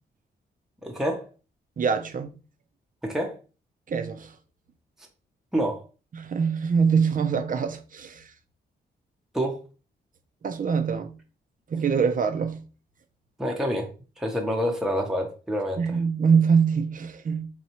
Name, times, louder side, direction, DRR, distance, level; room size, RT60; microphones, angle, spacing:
voice 1, 0.8-1.3 3.0-3.4 5.5-5.8 9.3-9.6 13.4-13.9 14.2-16.0, equal, ahead, 0.8 m, -27 dB
voice 2, 1.8-2.3 3.9-4.3 6.1-8.2 10.4-11.1 11.7-12.6 15.8-17.5, right 6 dB, 45° right, 0.6 m, -24 dB
4.1 x 2.3 x 2.9 m
cardioid pair, 70°, 19 cm